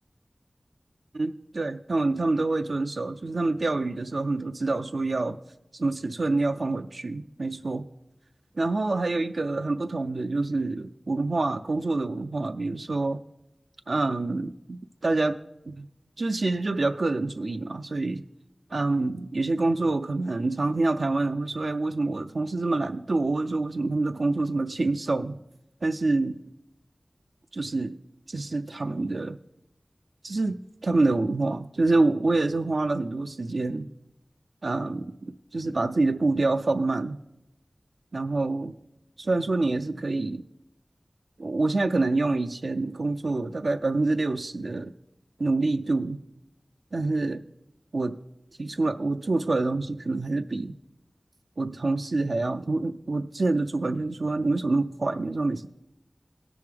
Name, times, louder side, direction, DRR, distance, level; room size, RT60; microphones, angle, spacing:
voice 1, 1.1-5.4 5.7-7.9 8.6-13.2 13.9-15.4 15.7-15.9 16.2-18.2 18.7-25.3 25.8-26.3 27.5-28.0 28.3-29.4 30.2-33.9 34.6-37.2 38.1-38.7 39.2-40.4 41.4-44.9 45.4-46.2 46.9-47.4 47.9-48.2 48.6-50.7 51.6-55.7, right 2 dB, 80° right, 6 dB, 0.3 m, -26 dB
17.5 x 6.9 x 3.4 m, 0.89 s
wide cardioid pair, 45°, 0 cm